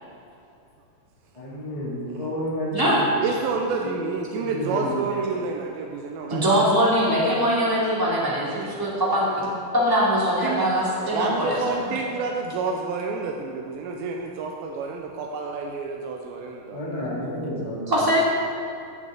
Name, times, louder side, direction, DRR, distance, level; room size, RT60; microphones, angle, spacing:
voice 1, 1.3-3.4 3.8-3.9 4.3-5.1 11.8-12.0 16.7-18.0, equal, 10° left, -9 dB, 2.0 m, -31 dB
voice 2, 3.1-6.6 7.1-7.2 8.6-8.7 10.4-10.7 11.0-17.0, right 4 dB, 85° right, 1 dB, 2.5 m, -29 dB
voice 3, 6.3-11.6 17.9-18.2, equal, 10° right, -7 dB, 1.6 m, -22 dB
16.0 x 6.2 x 3.9 m, 2.5 s
omnidirectional pair, 4.2 m